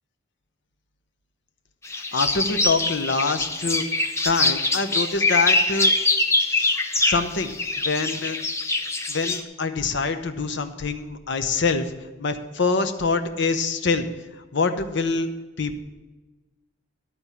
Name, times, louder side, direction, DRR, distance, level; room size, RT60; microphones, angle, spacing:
sound 1, 1.8-9.4, left 2 dB, 15° left, 0.6 m, -23 dB
voice 1, 2.1-3.8 4.2-5.9 6.5-7.5 7.8-8.4 9.1-11.9 12.2-14.1 14.5-15.3 15.6-15.8, left 4 dB, 60° left, 8 dB, 0.8 m, -25 dB
12.5 x 4.3 x 8.4 m, 1.2 s
head